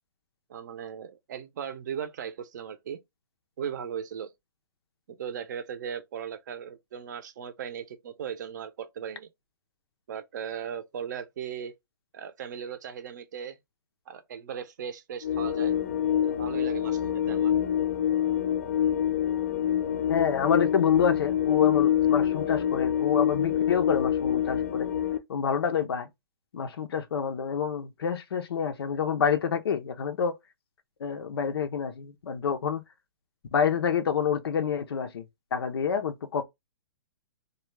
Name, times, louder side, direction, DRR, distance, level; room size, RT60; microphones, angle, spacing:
voice 1, 0.5-3.0 3.6-4.3 5.1-9.3 10.1-11.7 12.1-13.6 14.1-15.8 16.2-17.5, right 8 dB, 50° right, 0.5 m, -37 dB
sound 1, 15.2-25.2, left 10 dB, 35° left, 0.4 m, -26 dB
voice 2, 20.1-24.9 25.3-26.1 26.5-30.3 31.0-32.8 33.5-35.2 35.5-36.4, left 7 dB, 85° left, 0.6 m, -27 dB
2.3 x 2.2 x 3.0 m
hypercardioid pair, 165°, 13 cm